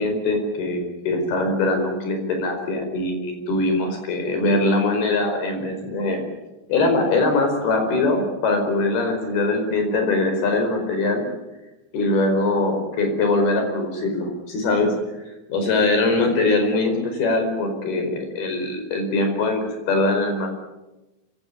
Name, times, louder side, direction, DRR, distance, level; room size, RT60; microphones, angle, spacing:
voice 1, 0.0-6.2 6.7-11.2 11.9-14.9 15.5-20.5, left 2 dB, 80° left, 5 dB, 6.8 m, -22 dB
26.0 x 16.5 x 9.8 m, 1.0 s
omnidirectional pair, 4.4 m